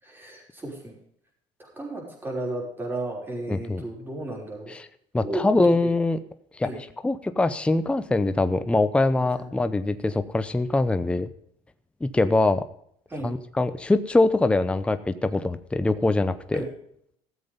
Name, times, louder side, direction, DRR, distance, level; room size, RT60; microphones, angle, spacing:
voice 1, 0.0-0.9 1.6-4.7 5.2-5.4 5.8-5.9 6.6-6.8 9.4-9.5 13.1-13.3 16.5-16.7, right 2 dB, 15° right, 0 dB, 5.5 m, -33 dB
voice 2, 3.5-3.8 4.7-4.9 5.1-6.2 6.5-6.7 7.0-11.3 12.0-12.6 13.2-16.6, left 2 dB, 10° left, 11 dB, 0.7 m, -23 dB
14.5 x 7.7 x 5.4 m, 0.68 s
supercardioid pair, 110°, 14 cm